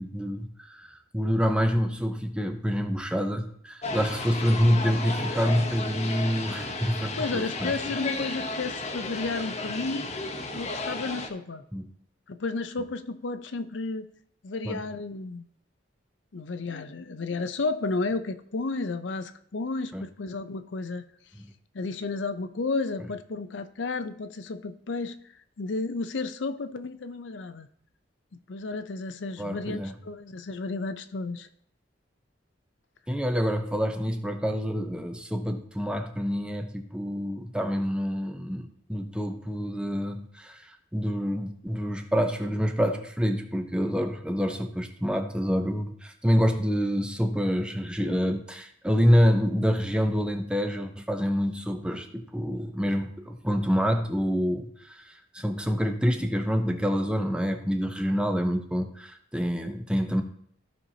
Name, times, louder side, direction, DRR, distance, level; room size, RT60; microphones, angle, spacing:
voice 1, 0.0-7.7 11.7-11.9 14.6-14.8 19.9-20.0 21.4-21.5 29.4-30.0 33.1-60.2, equal, 5° right, 6 dB, 0.7 m, -27 dB
sound 1, 3.8-11.3, left 3 dB, 35° left, 0.9 m, -33 dB
voice 2, 7.2-10.1 10.5-11.6 12.3-14.1 14.4-15.5 16.3-21.0 21.7-25.2 25.6-27.7 28.3-31.5, left 3 dB, 80° left, 10 dB, 0.6 m, -32 dB
15.0 x 5.6 x 2.8 m, 0.66 s
head